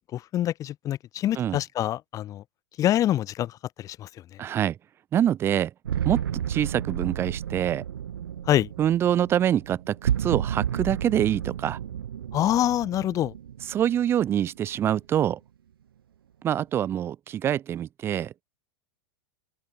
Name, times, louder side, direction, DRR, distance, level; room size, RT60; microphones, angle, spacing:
voice 1, 0.1-2.4 2.8-3.5 3.8-4.1 8.5-8.7 12.3-13.3, left 12 dB, 25° left, 0.7 m, -25 dB
voice 2, 4.4-4.8 5.1-5.7 6.0-6.2 6.5-7.8 8.8-11.8 13.6-15.4 16.4-18.4, right 10 dB, 20° right, 0.3 m, -25 dB
sound 1, 5.8-14.8, right 9 dB, 70° right, 0.6 m, -32 dB
open air
figure-of-eight pair, 95°, 13 cm